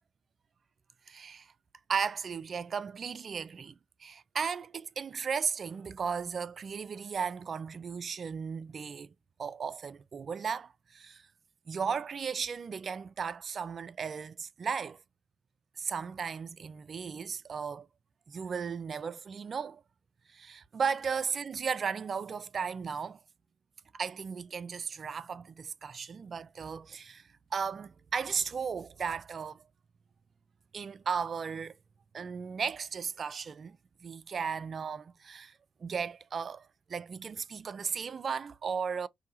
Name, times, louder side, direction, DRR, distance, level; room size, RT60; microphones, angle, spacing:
voice 1, 1.1-1.5 1.9-3.7 4.0-9.1 9.4-11.3 11.7-15.0 15.8-17.9 18.3-19.8 20.3-23.2 23.9-27.2 27.5-29.6 30.7-31.7 32.1-35.5 35.8-39.1, right 6 dB, 45° right, 0.3 m, -35 dB
2.7 x 2.7 x 3.9 m
cardioid pair, 90°, 0 cm